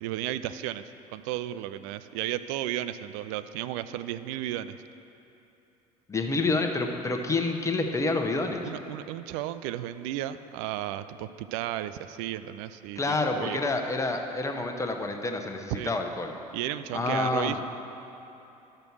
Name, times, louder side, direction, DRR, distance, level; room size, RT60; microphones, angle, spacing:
voice 1, 0.0-4.8 8.6-13.6 15.7-15.9 16.5-17.6, right 13 dB, 60° right, 12 dB, 0.4 m, -34 dB
voice 2, 6.1-8.6 13.0-16.3 16.9-17.6, left 3 dB, 15° left, 4 dB, 0.9 m, -28 dB
12.0 x 6.6 x 4.7 m, 2.9 s
figure-of-eight pair, 60°, 19 cm